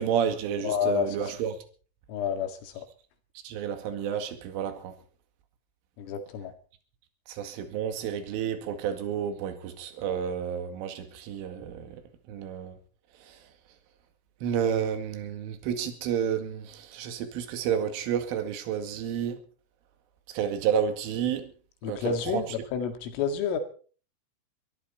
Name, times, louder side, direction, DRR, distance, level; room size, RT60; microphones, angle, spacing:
voice 1, 0.0-1.6 3.4-5.0 7.3-12.0 12.3-12.8 13.2-13.4 14.4-19.4 20.3-21.5 21.8-22.6, right 8 dB, 75° right, 4.6 m, -30 dB
voice 2, 0.6-1.1 2.1-2.8 6.0-6.5 21.8-23.6, left 6 dB, 75° left, 4.5 m, -29 dB
23.0 x 14.5 x 4.3 m
omnidirectional pair, 5.9 m